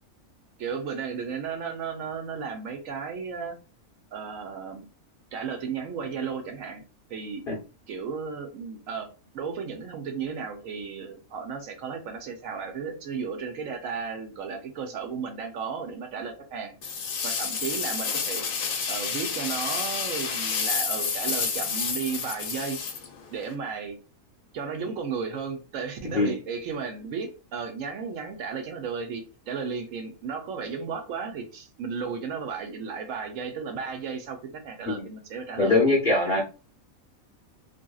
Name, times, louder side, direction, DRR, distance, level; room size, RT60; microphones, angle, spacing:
voice 1, 0.6-3.6 4.1-4.9 5.3-6.8 7.1-7.5 7.9-16.7 17.2-18.4 18.9-22.8 23.3-24.0 24.5-35.8 36.3-36.4, right 6 dB, 70° right, 0.9 m, -34 dB
sound 1, 16.8-23.5, left 5 dB, 75° left, 1.0 m, -30 dB
voice 2, 35.6-36.4, left 3 dB, 50° left, 0.7 m, -22 dB
2.8 x 2.6 x 2.3 m
omnidirectional pair, 1.5 m